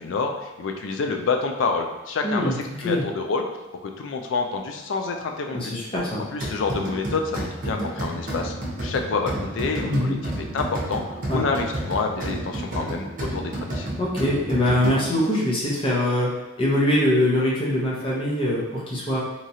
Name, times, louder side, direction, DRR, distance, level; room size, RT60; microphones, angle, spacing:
voice 1, 0.0-3.4 3.8-5.7 6.3-10.2 10.5-11.0 11.3-13.9, left 4 dB, 65° left, 4 dB, 0.4 m, -27 dB
voice 2, 2.2-2.5 2.8-3.0 5.5-6.2 9.8-10.2 11.3-11.4 14.0-16.3 16.6-19.2, left 1 dB, 30° left, -5 dB, 0.7 m, -23 dB
sound 1, 6.4-15.3, right 1 dB, 45° right, 0.7 m, -31 dB
3.0 x 2.3 x 2.7 m, 1.1 s
head